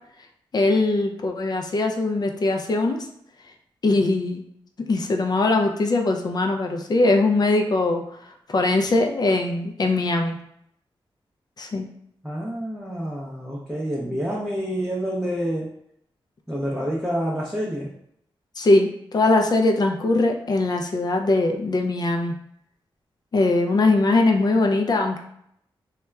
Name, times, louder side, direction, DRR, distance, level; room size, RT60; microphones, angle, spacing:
voice 1, 0.5-3.0 3.8-4.4 4.9-8.0 8.5-10.4 11.6-11.9 18.6-22.3 23.3-25.2, left 2 dB, 45° left, 3 dB, 0.4 m, -21 dB
voice 2, 12.2-15.7 16.5-17.9, equal, 5° right, -6 dB, 0.6 m, -28 dB
2.8 x 2.2 x 2.3 m, 0.72 s
cardioid pair, 60°, 10 cm